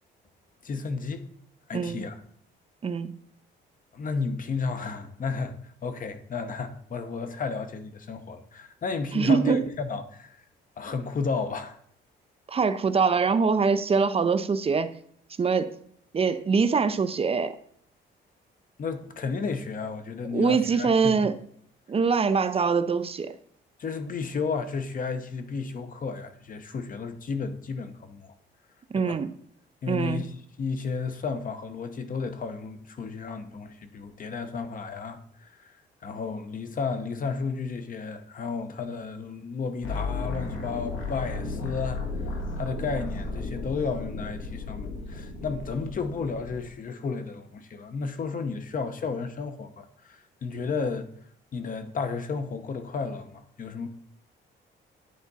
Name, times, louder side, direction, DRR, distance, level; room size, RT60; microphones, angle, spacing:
voice 1, 0.6-1.3 1.7-2.2 3.9-5.6 5.8-10.4 10.8-11.8 18.8-21.3 23.8-28.3 28.9-29.2 29.8-30.3 30.6-35.7 36.0-42.0 42.5-51.1 51.5-53.9, left 4 dB, 45° left, 0.8 m, -33 dB
voice 2, 1.7-2.1 2.8-3.1 9.1-9.7 12.5-14.9 15.4-15.7 16.1-17.6 20.3-21.4 21.9-23.4 28.9-29.3 29.9-30.2, right 5 dB, 30° right, 0.5 m, -24 dB
sound 1, 39.8-46.7, left 3 dB, 75° left, 1.6 m, -34 dB
9.4 x 3.5 x 4.1 m
cardioid pair, 90°, 20 cm